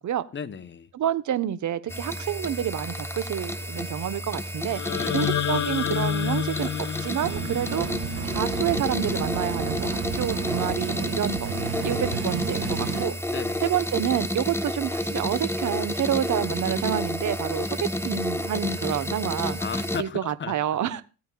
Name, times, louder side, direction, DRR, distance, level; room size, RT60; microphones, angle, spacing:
voice 1, 0.3-0.9 4.9-5.4 13.3-13.7 19.6-20.6 20.9-21.0, left 7 dB, 25° left, 1.0 m, -36 dB
voice 2, 0.9-4.8 5.1-7.9 8.2-11.5 11.8-13.1 13.6-19.6 20.0-21.0, right 10 dB, 45° right, 1.3 m, -28 dB
sound 1, 1.9-20.0, left 1 dB, 5° left, 1.3 m, -30 dB
sound 2, 4.7-8.8, left 9 dB, 40° left, 1.3 m, -29 dB
sound 3, 7.2-13.1, right 7 dB, 65° right, 2.1 m, -32 dB
17.5 x 9.4 x 2.5 m
hypercardioid pair, 60°, 42 cm